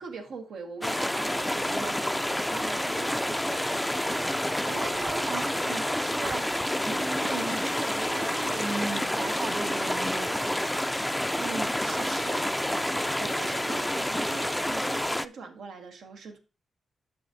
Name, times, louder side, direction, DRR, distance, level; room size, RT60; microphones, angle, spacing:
voice 1, 0.0-4.3 11.4-16.4, right 4 dB, 85° right, 1.6 m, -42 dB
sound 1, 0.8-15.3, left 1 dB, 5° left, 0.4 m, -29 dB
voice 2, 4.6-6.5 6.8-10.5, right 3 dB, 50° right, 1.3 m, -36 dB
11.5 x 6.3 x 2.7 m
wide cardioid pair, 150°, 0 cm